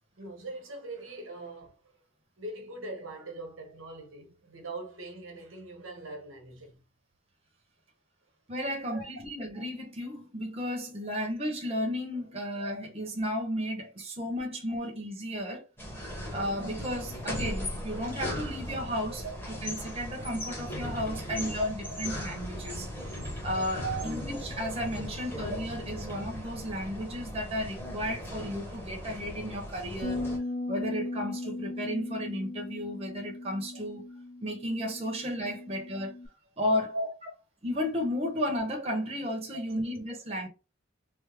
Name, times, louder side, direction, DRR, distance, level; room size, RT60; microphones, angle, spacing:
voice 1, 0.2-1.8 2.4-6.8 8.9-9.0 19.2-19.3 21.1-21.5 21.8-22.1 23.8-24.2 36.9-37.4 39.7-39.8, right 3 dB, 90° right, 1.0 m, -40 dB
voice 2, 8.5-15.7 16.3-22.9 23.4-30.3 30.7-34.0 34.4-36.1 36.6-37.0 37.6-40.5, equal, 30° right, 0.7 m, -33 dB
sound 1, 15.8-30.4, left 1 dB, 10° left, 1.0 m, -38 dB
Bass guitar, 30.0-36.3, left 2 dB, 50° left, 0.8 m, -38 dB
3.3 x 2.0 x 3.4 m
head